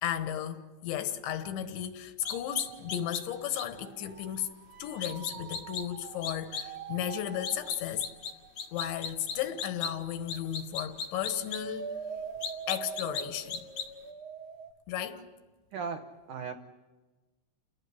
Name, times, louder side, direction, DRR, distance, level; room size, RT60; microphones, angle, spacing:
voice 1, 0.0-4.5 4.8-8.1 8.7-12.0 12.7-13.7 14.9-15.2, left 10 dB, 85° left, 3.7 m, -34 dB
sound 1, 2.2-3.2 3.5-3.6 5.0-5.8 6.2-6.6 7.4-8.3 8.6-9.9 10.3-11.6 12.4-13.2 13.5-13.8, left 6 dB, 45° left, 2.8 m, -35 dB
sound 2, 2.2-10.5 10.8-14.7, right 6 dB, 55° right, 2.3 m, -45 dB
voice 2, 15.7-16.6, right 5 dB, 75° right, 1.8 m, -37 dB
29.5 x 19.0 x 9.8 m
omnidirectional pair, 5.2 m